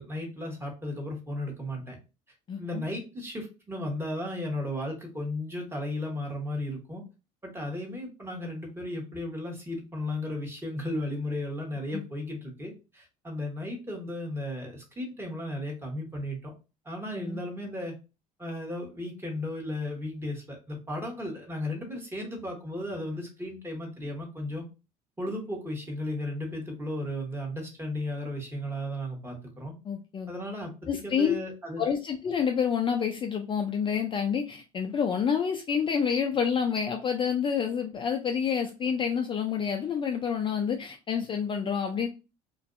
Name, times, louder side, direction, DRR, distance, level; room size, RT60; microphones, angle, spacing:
voice 1, 0.0-2.0 2.6-7.0 7.4-16.5 16.8-17.9 18.4-24.6 25.2-29.7 30.3-31.8, left 1 dB, 15° right, 1.0 m, -35 dB
voice 2, 2.5-2.8 11.9-12.0 17.2-17.4 29.9-30.3 30.9-31.3 31.8-42.1, left 7 dB, 30° left, 0.4 m, -28 dB
2.5 x 2.2 x 2.4 m
supercardioid pair, 80°, 17 cm